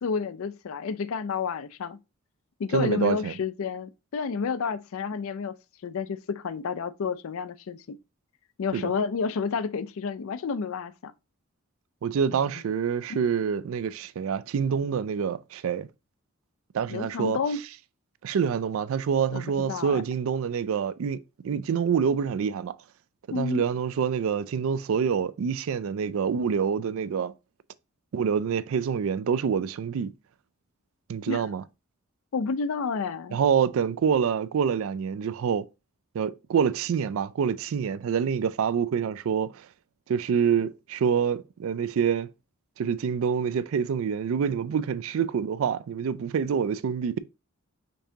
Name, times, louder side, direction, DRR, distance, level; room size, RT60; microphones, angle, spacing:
voice 1, 0.0-2.0 2.6-5.5 5.8-8.0 8.6-11.1 13.1-13.2 16.9-17.6 19.3-20.0 23.3-23.6 31.3-31.5 32.3-33.4, left 5 dB, 70° left, 0.4 m, -30 dB
voice 2, 2.7-3.3 8.7-8.9 12.0-15.9 16.7-17.4 18.2-21.2 21.4-22.8 23.3-27.3 28.1-30.1 31.1-31.6 33.3-35.7 36.1-39.7 40.1-42.3 42.8-47.2, right 7 dB, 65° right, 0.3 m, -26 dB
5.3 x 3.5 x 2.7 m
head